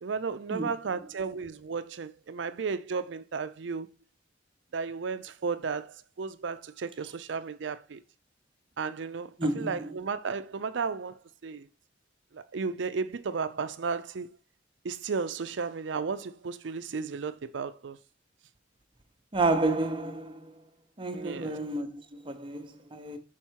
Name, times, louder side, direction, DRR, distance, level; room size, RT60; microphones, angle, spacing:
voice 1, 0.0-3.9 4.7-8.0 8.8-11.7 12.3-14.3 14.8-18.0 21.1-21.6, right 5 dB, 70° right, 0.5 m, -34 dB
voice 2, 9.4-9.9 19.3-20.5 21.0-23.2, right 2 dB, 25° right, 0.8 m, -30 dB
5.7 x 4.4 x 4.5 m
head